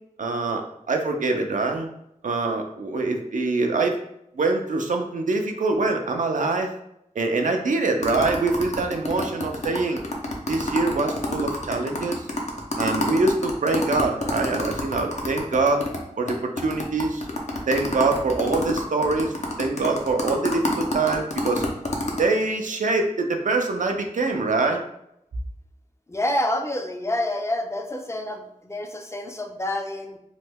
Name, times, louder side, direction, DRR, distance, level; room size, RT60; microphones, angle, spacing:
voice 1, 0.2-1.9 2.2-3.9 4.4-6.7 7.2-10.0 10.5-12.2 12.8-15.8 16.2-17.3 17.7-19.3 19.6-21.6 22.2-24.8, right 3 dB, 85° right, 3 dB, 0.4 m, -24 dB
sound 1, 8.0-16.0 16.3-16.4 16.6-22.2, left 2 dB, 60° left, 0.6 m, -28 dB
voice 2, 26.1-30.2, left 1 dB, 20° left, 4 dB, 0.4 m, -28 dB
3.0 x 2.1 x 3.4 m, 0.80 s
wide cardioid pair, 40°, 13 cm